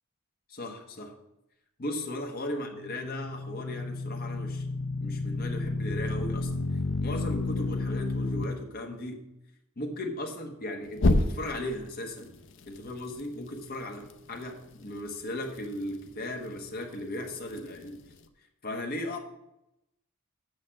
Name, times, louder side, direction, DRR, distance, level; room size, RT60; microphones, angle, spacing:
voice 1, 0.5-1.1 1.8-4.7 5.0-6.5 7.0-9.2 9.8-12.3 12.7-18.0 18.6-19.2, left 1 dB, 45° left, 2 dB, 1.1 m, -36 dB
sound 1, 2.7-8.4 11.0-11.7, left 2 dB, 60° left, 0.6 m, -29 dB
6.6 x 6.6 x 7.4 m, 0.86 s
head